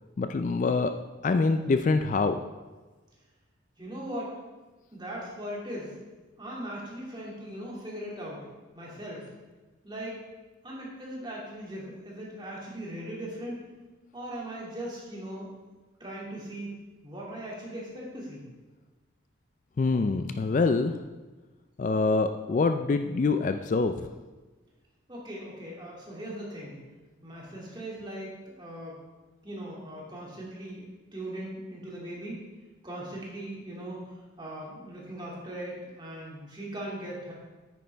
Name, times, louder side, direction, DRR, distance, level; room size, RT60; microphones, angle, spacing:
voice 1, 0.2-0.9 1.2-2.4 19.8-21.0 21.8-24.1, left 3 dB, 40° left, 8 dB, 0.3 m, -25 dB
voice 2, 3.8-4.3 4.9-6.0 6.4-8.4 8.7-9.3 9.8-10.2 10.6-13.6 14.1-15.5 16.0-16.7 17.0-18.4 25.1-26.8 27.2-29.0 29.4-30.9 31.1-32.4 32.8-37.3, right 1 dB, 20° right, -4 dB, 2.3 m, -39 dB
9.5 x 9.3 x 3.4 m, 1.2 s
head